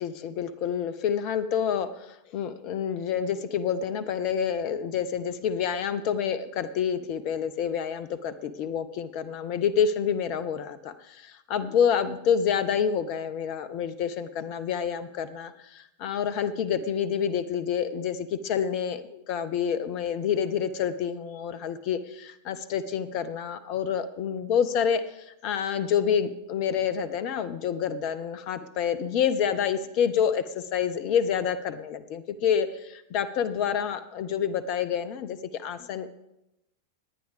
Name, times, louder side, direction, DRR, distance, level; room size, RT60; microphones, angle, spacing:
voice 1, 0.0-36.1, left 8 dB, 45° left, 14 dB, 0.6 m, -28 dB
19.0 x 9.2 x 3.4 m, 0.87 s
figure-of-eight pair, 90°, 0 cm